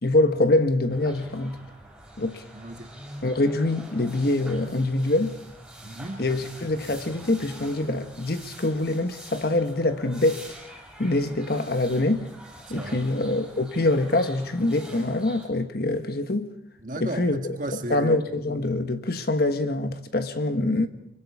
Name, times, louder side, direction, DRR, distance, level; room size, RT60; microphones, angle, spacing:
voice 1, 0.0-1.6 2.2-2.4 3.2-5.4 6.2-10.5 11.0-12.3 12.7-16.5 17.0-17.6 17.9-20.9, left 2 dB, 55° left, 1.3 m, -24 dB
sound 1, 0.9-15.5, right 1 dB, ahead, 6.1 m, -45 dB
voice 2, 2.5-2.9 5.8-6.2 12.7-13.0 16.8-18.2, right 1 dB, 45° right, 1.7 m, -34 dB
25.0 x 23.5 x 4.9 m
head